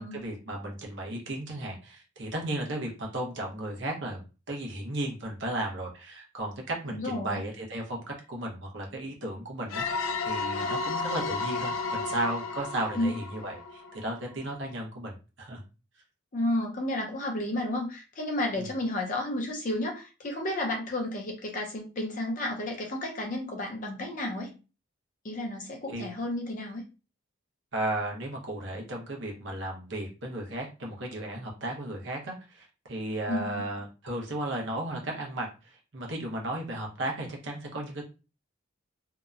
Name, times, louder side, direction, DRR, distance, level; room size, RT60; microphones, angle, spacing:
voice 1, 0.0-8.0 8.3-15.6 18.6-18.7 25.9-26.1 27.7-38.0, right 1 dB, 65° right, 0 dB, 0.8 m, -35 dB
voice 2, 6.9-7.4 13.0-13.1 16.3-24.5 25.2-26.8 33.3-33.6, left 1 dB, 40° left, 2 dB, 0.6 m, -32 dB
sound 1, 9.7-14.3, left 4 dB, 90° left, 0.4 m, -33 dB
2.8 x 2.1 x 2.4 m, 0.32 s
head